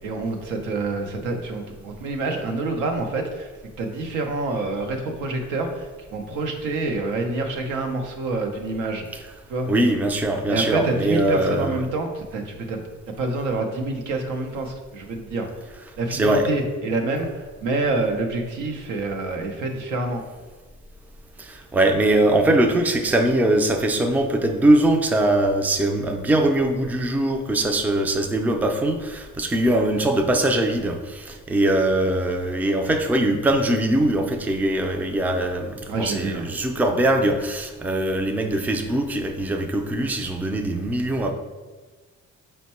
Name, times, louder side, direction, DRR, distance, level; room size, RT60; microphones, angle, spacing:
voice 1, 0.0-3.5 3.8-9.0 9.5-9.7 10.5-15.5 16.0-20.2 35.9-36.5, right 2 dB, 90° right, 3 dB, 0.7 m, -27 dB
voice 2, 9.7-11.8 16.1-16.5 21.4-41.3, right 1 dB, 5° right, 4 dB, 0.4 m, -21 dB
4.4 x 2.2 x 4.2 m, 1.3 s
cardioid pair, 90°, 30 cm